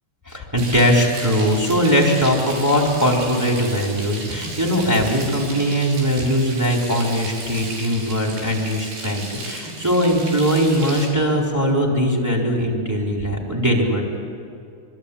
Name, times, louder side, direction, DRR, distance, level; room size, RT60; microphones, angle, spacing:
voice 1, 0.3-14.0, equal, 5° right, 0 dB, 3.4 m, -20 dB
Frying (food), 0.6-11.1, right 2 dB, 80° right, 6.8 m, -34 dB
25.5 x 24.5 x 8.6 m, 2.4 s
omnidirectional pair, 4.7 m